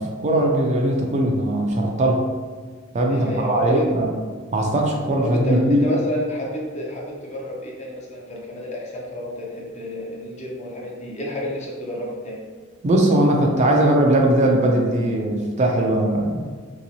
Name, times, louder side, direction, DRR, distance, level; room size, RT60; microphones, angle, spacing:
voice 1, 0.0-2.2 2.9-4.1 4.5-5.8 12.8-16.5, right 1 dB, 35° right, 1 dB, 0.4 m, -19 dB
voice 2, 3.1-3.9 5.2-12.4, left 1 dB, 35° left, -2 dB, 0.6 m, -30 dB
2.9 x 2.9 x 2.7 m, 1.5 s
head